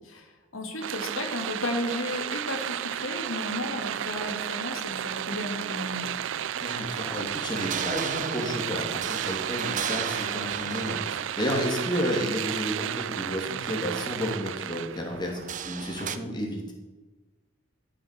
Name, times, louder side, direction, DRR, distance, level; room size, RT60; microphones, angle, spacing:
voice 1, 0.0-6.1, left 1 dB, 85° left, 3 dB, 2.2 m, -34 dB
sound 1, 0.8-15.5, right 10 dB, 65° right, 0.4 m, -33 dB
sound 2, 3.5-16.2, right 6 dB, 40° right, 0.7 m, -38 dB
voice 2, 6.6-16.7, equal, 20° left, -1 dB, 2.7 m, -32 dB
13.5 x 7.6 x 6.7 m, 1.2 s
head